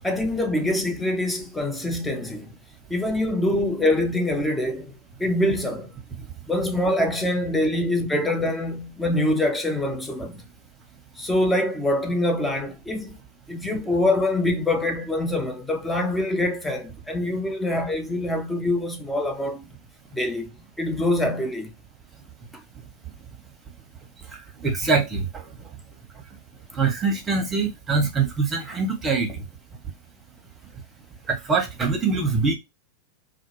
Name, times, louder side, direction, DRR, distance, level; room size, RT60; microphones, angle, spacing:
voice 1, 0.0-2.6 2.9-4.9 5.2-6.0 6.5-10.4 11.2-13.2 13.5-19.7 20.1-21.7 22.5-22.6, left 1 dB, 5° left, 0.6 m, -25 dB
voice 2, 24.6-25.3 26.8-29.4 31.3-32.5, right 4 dB, 20° right, 0.9 m, -23 dB
2.2 x 2.1 x 3.2 m
figure-of-eight pair, 90°, 0 cm